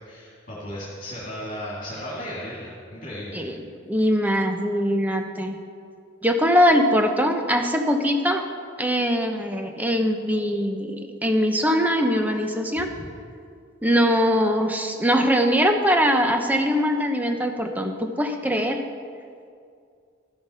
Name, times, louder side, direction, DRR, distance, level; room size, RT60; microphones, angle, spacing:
voice 1, 0.0-3.4 12.8-13.1, equal, 45° left, -7 dB, 2.4 m, -35 dB
voice 2, 3.9-5.6 6.2-8.4 8.8-12.9 13.8-18.8, equal, 10° right, 4 dB, 0.8 m, -22 dB
13.0 x 7.6 x 5.6 m, 2.3 s
head